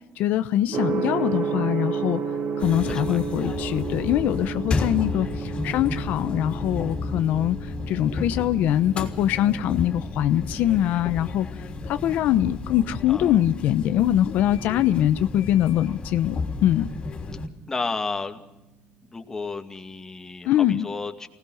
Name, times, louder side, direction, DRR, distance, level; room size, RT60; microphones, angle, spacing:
voice 1, 0.2-2.2 2.6-11.5 11.8-16.9 20.4-20.9, left 12 dB, 75° left, 10 dB, 0.9 m, -23 dB
Gong, 0.7-18.6, right 5 dB, 50° right, 2.6 m, -34 dB
sound 1, 2.6-17.5, left 3 dB, 35° left, 3.5 m, -33 dB
voice 2, 2.9-3.2 13.1-13.3 17.7-18.4 19.1-20.5 20.8-21.3, left 4 dB, 15° left, 5 dB, 2.2 m, -32 dB
25.0 x 19.0 x 6.5 m, 0.93 s
cardioid pair, 130°, 3 cm